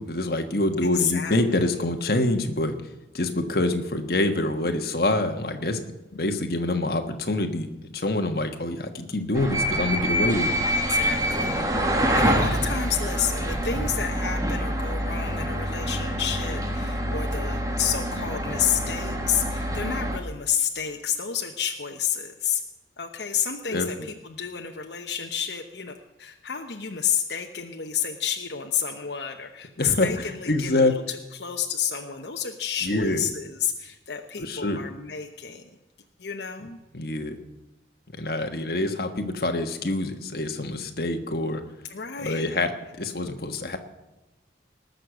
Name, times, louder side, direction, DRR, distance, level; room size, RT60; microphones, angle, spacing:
voice 1, 0.0-2.8 3.1-5.8 6.1-10.5 23.7-23.9 29.8-30.9 32.8-33.2 34.4-34.8 36.9-37.4 38.2-41.6 42.2-43.8, left 2 dB, 55° left, 5 dB, 1.4 m, -26 dB
voice 2, 0.8-1.7 10.7-22.6 23.0-35.6 36.2-36.8 41.9-42.5, left 8 dB, 80° left, 4 dB, 1.0 m, -30 dB
sound 1, 9.3-20.2, equal, 20° right, 1.5 m, -26 dB
19.5 x 6.7 x 7.8 m, 1.1 s
head